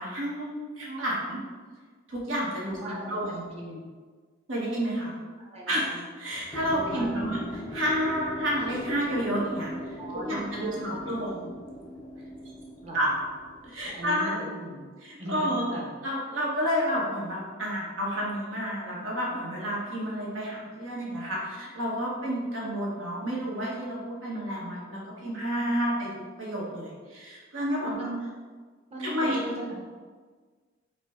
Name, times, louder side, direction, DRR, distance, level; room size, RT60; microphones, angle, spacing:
voice 1, 0.0-1.4 2.1-2.8 3.1-3.4 4.5-5.2 5.7-7.4 7.7-9.9 10.2-11.5 12.9-13.1 13.6-14.4 15.0-15.7 16.0-26.1 26.4-27.9 29.0-29.4, equal, 75° right, -4 dB, 1.1 m, -30 dB
voice 2, 2.6-3.2 3.5-3.8 5.4-6.0 6.8-7.3 10.0-11.0 12.8-13.1 13.9-14.8 15.2-15.8 27.8-28.2 28.9-29.8, equal, 30° right, -3 dB, 0.9 m, -38 dB
sound 1, 6.5-14.1, equal, 20° left, 0.4 m, -39 dB
5.9 x 2.1 x 4.2 m, 1.5 s
head